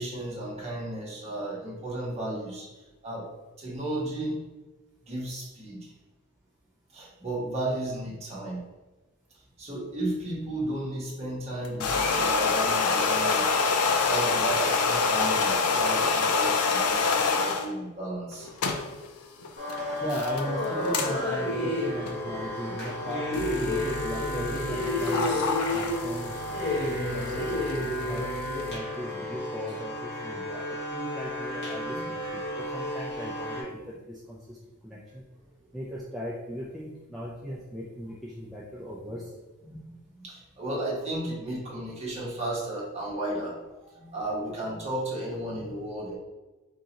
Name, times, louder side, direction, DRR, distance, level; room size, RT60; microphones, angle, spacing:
voice 1, 0.0-3.3 3.6-4.4 5.0-5.9 6.9-8.7 9.6-13.6 14.1-18.8 23.3-23.6 31.9-32.0 39.0-39.1 39.7-46.2, right 1 dB, 30° right, -5 dB, 1.2 m, -34 dB
sound 1, 11.7-17.7 18.3-28.8, left 4 dB, 90° left, 0.5 m, -27 dB
sound 2, 19.6-33.6, left 1 dB, 50° left, 1.3 m, -31 dB
voice 2, 20.0-26.5 26.9-34.6 34.8-35.2 35.7-39.3, equal, ahead, -7 dB, 0.5 m, -38 dB
3.8 x 3.7 x 2.9 m, 1.2 s
head